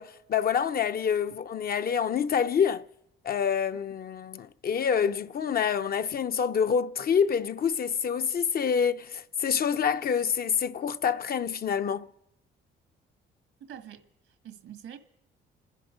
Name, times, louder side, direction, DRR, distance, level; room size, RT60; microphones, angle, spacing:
voice 1, 0.0-2.9 3.2-12.1, left 7 dB, 50° left, 0.7 m, -27 dB
voice 2, 13.6-15.0, right 9 dB, 80° right, 1.7 m, -46 dB
26.0 x 10.5 x 5.1 m
cardioid pair, 90°, 20 cm